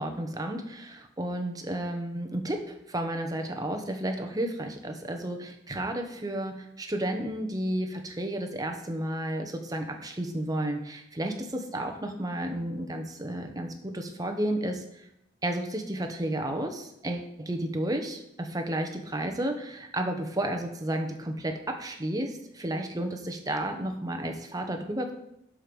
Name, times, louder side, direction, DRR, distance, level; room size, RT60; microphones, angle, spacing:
voice 1, 0.0-15.1 15.4-25.1, right 1 dB, 20° right, 5 dB, 1.1 m, -32 dB
12.0 x 5.0 x 5.4 m, 0.80 s
head